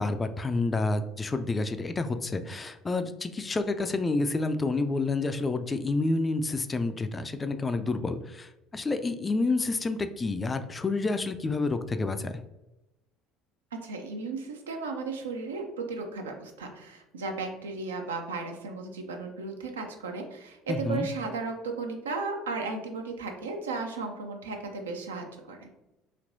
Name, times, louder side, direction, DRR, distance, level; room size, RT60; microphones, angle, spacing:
voice 1, 0.0-12.3 20.7-21.1, left 3 dB, 25° left, 9 dB, 0.3 m, -29 dB
voice 2, 13.8-25.7, right 3 dB, 80° right, 3 dB, 0.4 m, -35 dB
3.2 x 2.8 x 2.6 m, 0.96 s
hypercardioid pair, 60°, 0 cm